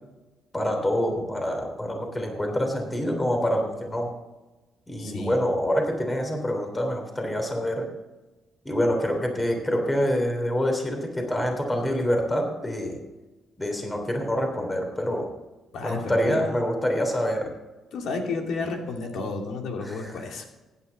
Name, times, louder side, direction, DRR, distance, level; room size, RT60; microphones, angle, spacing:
voice 1, 0.5-4.1 4.9-7.8 8.6-13.0 13.6-15.3 15.8-17.5 19.8-20.1, equal, 15° left, 3 dB, 3.2 m, -26 dB
voice 2, 5.0-5.4 15.7-16.6 17.9-20.4, left 3 dB, 75° left, 2 dB, 2.6 m, -32 dB
15.5 x 9.9 x 4.1 m, 1.1 s
cardioid pair, 90°, 0 cm